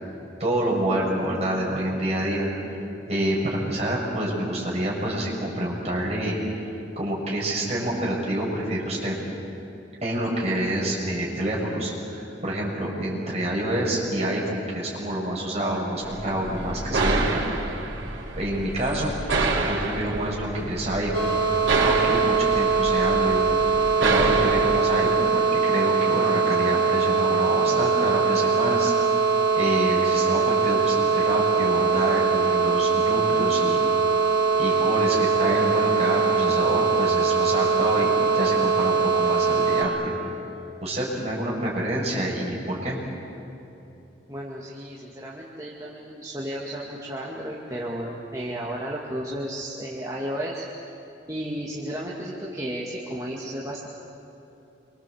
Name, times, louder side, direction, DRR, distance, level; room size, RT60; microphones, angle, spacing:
voice 1, 0.4-2.5 3.1-6.4 7.0-9.2 10.0-17.4 18.3-19.2 19.6-21.4 21.8-23.4 24.0-28.9 29.6-33.8 34.6-40.1 40.8-43.0, right 1 dB, 35° right, -3 dB, 6.7 m, -27 dB
sound 1, 16.0-24.8, right 3 dB, 85° right, 3.7 m, -28 dB
sound 2, 21.1-39.8, right 5 dB, 70° right, 5.0 m, -22 dB
voice 2, 44.3-50.6 51.3-53.9, right 1 dB, 20° right, -4 dB, 2.2 m, -33 dB
27.5 x 24.5 x 8.0 m, 2.9 s
head